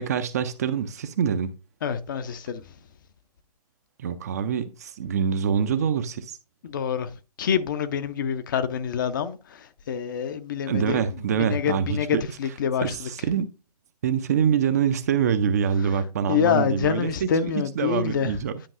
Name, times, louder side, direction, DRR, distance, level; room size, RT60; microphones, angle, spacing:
voice 1, 0.0-1.5 4.0-6.4 10.7-12.2 12.8-13.5 14.0-18.6, right 7 dB, 25° right, 0.4 m, -25 dB
voice 2, 1.8-2.6 6.6-7.1 7.4-12.9 16.3-18.4, left 8 dB, 30° left, 0.5 m, -26 dB
10.0 x 5.3 x 2.4 m
figure-of-eight pair, 135°, 20 cm